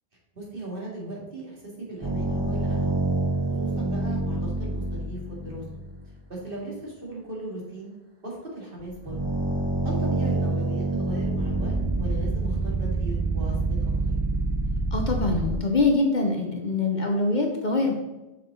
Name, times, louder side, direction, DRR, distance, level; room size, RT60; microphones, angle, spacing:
voice 1, 0.3-3.0 3.4-5.8 6.3-7.9 8.2-9.2 9.8-13.9, right 1 dB, 50° right, -4 dB, 2.5 m, -37 dB
sound 1, 2.0-6.1 8.8-15.6, right 2 dB, 30° right, 0.6 m, -27 dB
voice 2, 14.9-17.9, left 3 dB, 45° left, 2 dB, 0.9 m, -24 dB
6.9 x 6.7 x 3.8 m, 1.0 s
omnidirectional pair, 1.2 m